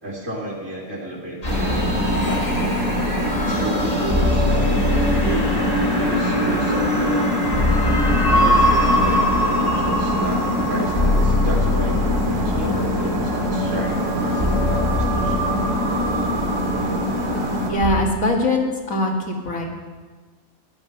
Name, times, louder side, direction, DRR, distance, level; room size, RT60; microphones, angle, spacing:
voice 1, 0.0-1.9 2.1-2.7 3.4-7.3 8.3-12.0 12.4-15.4, right 1 dB, 65° right, -6 dB, 2.8 m, -32 dB
sound 1, 1.4-18.0, left 1 dB, 30° left, 1.7 m, -22 dB
sound 2, 1.4-17.7, equal, 80° right, 2.4 m, -24 dB
voice 2, 17.7-18.6 18.9-19.7, left 1 dB, 75° left, 1 dB, 2.3 m, -21 dB
14.0 x 10.5 x 5.7 m, 1.4 s
omnidirectional pair, 1.4 m